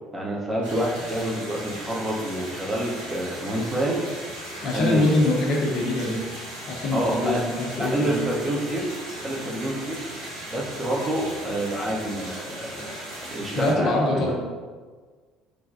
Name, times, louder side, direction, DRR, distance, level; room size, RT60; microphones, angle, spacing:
voice 1, 0.1-4.0 4.7-5.2 6.9-7.4 7.8-8.9 9.2-10.0 10.5-12.9 13.3-14.3, right 1 dB, 25° right, -3 dB, 0.8 m, -27 dB
sound 1, 0.6-13.7, equal, 80° right, 1.0 m, -37 dB
voice 2, 4.6-6.2 6.7-8.1 13.5-14.3, left 2 dB, 55° left, -1 dB, 0.6 m, -23 dB
3.3 x 2.2 x 2.6 m, 1.5 s
hypercardioid pair, 60°, 0 cm